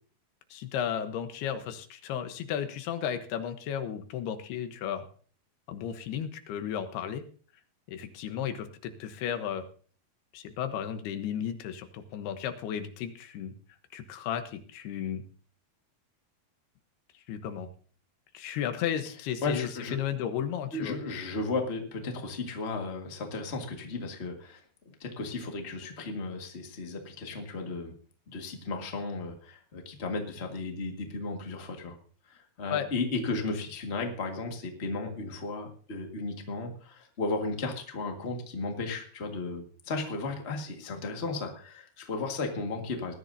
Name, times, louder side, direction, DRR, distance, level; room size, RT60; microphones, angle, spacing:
voice 1, 0.5-5.1 5.7-7.2 7.9-9.6 10.3-13.5 13.9-15.2 17.3-17.7 18.3-21.0 32.7-32.9, left 9 dB, 85° left, 8 dB, 3.1 m, -34 dB
voice 2, 19.4-20.0 20.7-27.9 28.3-32.0 32.2-43.1, left 3 dB, 60° left, 3 dB, 0.6 m, -35 dB
20.0 x 13.5 x 2.7 m, 0.43 s
omnidirectional pair, 4.5 m